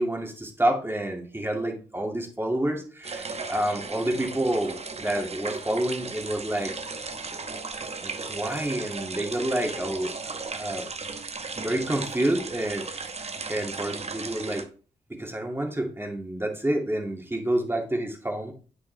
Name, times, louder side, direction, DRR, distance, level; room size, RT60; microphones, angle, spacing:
voice 1, 0.0-6.7 8.0-10.9 11.6-13.1 13.5-14.6 15.1-18.5, right 1 dB, 15° right, 2 dB, 2.1 m, -28 dB
sound 1, 3.0-14.6, right 4 dB, 40° right, 1.1 m, -36 dB
8.4 x 5.2 x 3.3 m, 0.39 s
hypercardioid pair, 40°, 17 cm